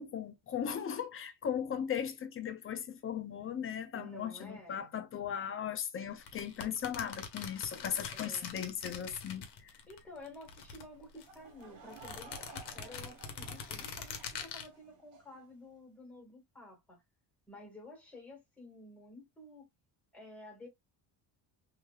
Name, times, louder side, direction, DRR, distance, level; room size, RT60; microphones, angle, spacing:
voice 1, 0.0-9.7, left 8 dB, 30° left, 0.5 m, -37 dB
voice 2, 3.9-4.9 8.1-8.5 9.9-17.0 17.5-19.7 20.1-20.7, left 1 dB, 5° left, 1.5 m, -52 dB
sound 1, 6.2-10.0 10.3-11.4 11.9-14.7, left 6 dB, 60° left, 0.9 m, -44 dB
Laughter / Crowd, 11.2-15.4, right 5 dB, 70° right, 1.6 m, -55 dB
3.2 x 2.8 x 2.2 m
cardioid pair, 130°, 45 cm